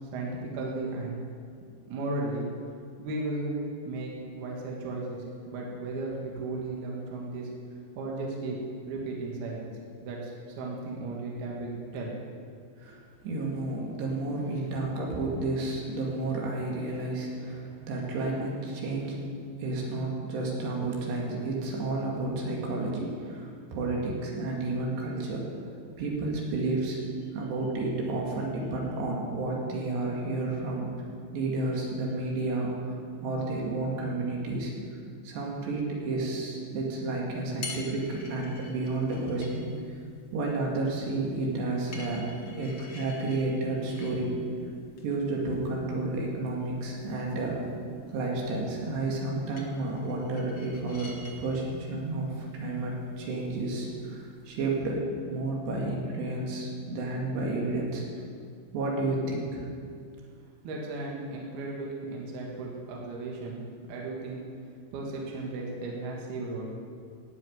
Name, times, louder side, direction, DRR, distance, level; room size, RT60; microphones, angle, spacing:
voice 1, 0.1-1.2 1.8-2.5 3.0-3.6 3.9-4.1 4.4-7.5 8.0-8.6 8.9-9.7 10.0-10.3 10.6-12.1 60.6-63.6 63.9-64.4 64.9-66.9, right 2 dB, 70° right, -2 dB, 3.6 m, -35 dB
voice 2, 12.8-19.2 19.6-25.5 26.0-27.0 27.3-30.9 31.3-32.9 33.2-34.8 35.2-40.0 40.3-44.4 45.0-47.6 48.1-58.0 58.7-59.6, right 2 dB, 90° right, -2 dB, 4.4 m, -31 dB
sound 1, 37.3-54.8, left 3 dB, 60° left, 1.2 m, -49 dB
15.5 x 6.9 x 9.3 m, 2.2 s
omnidirectional pair, 4.8 m